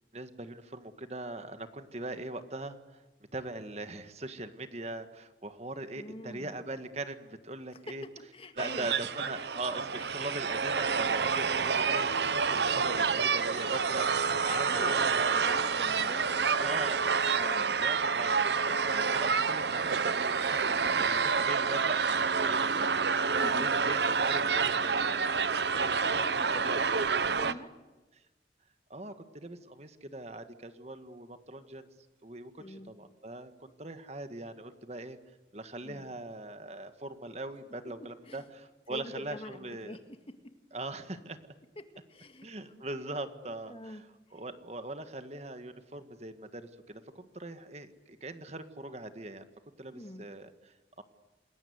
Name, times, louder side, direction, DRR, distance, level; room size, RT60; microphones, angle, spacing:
voice 1, 0.1-3.0 3.3-8.0 8.5-13.0 13.3-15.7 16.6-17.0 17.4-20.7 21.0-26.8 27.1-27.6 28.9-31.9 32.2-35.2 35.5-40.0 40.7-41.4 42.4-44.0 44.3-49.5 49.8-51.0, right 2 dB, 35° right, 9 dB, 1.6 m, -41 dB
voice 2, 6.0-6.5 7.9-8.9 10.0-10.1 13.0-13.2 14.1-16.7 17.3-17.8 23.4-23.7 24.9-25.0 26.0-27.7 32.6-32.9 35.8-36.0 38.3-38.5 38.9-40.2 42.1-42.5 43.7-44.0 44.3-44.4 49.9-50.3, left 1 dB, 30° left, 8 dB, 1.9 m, -45 dB
sound 1, 8.6-27.5, right 5 dB, 75° right, 0.9 m, -28 dB
28.0 x 21.0 x 9.5 m, 1.2 s
head